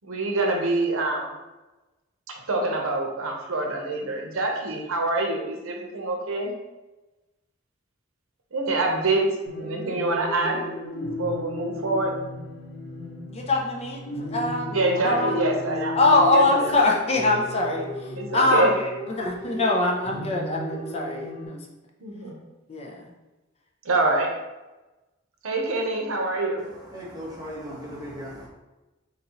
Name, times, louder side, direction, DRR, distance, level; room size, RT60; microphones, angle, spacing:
voice 1, 0.0-1.3 2.3-6.5 8.5-10.6 11.2-12.2 14.7-16.0 16.3-16.7 18.1-18.7 22.0-22.4 23.8-24.3 25.4-26.6, right 2 dB, 80° right, 0.8 m, -25 dB
sound 1, 9.5-21.5, left 1 dB, 70° left, 1.5 m, -35 dB
voice 2, 13.3-14.7 15.0-15.3 16.0-17.9 18.3-21.6 22.7-23.0, left 2 dB, 30° left, 0.6 m, -23 dB
voice 3, 26.6-28.5, equal, 20° right, 1.1 m, -38 dB
4.1 x 4.0 x 2.9 m
head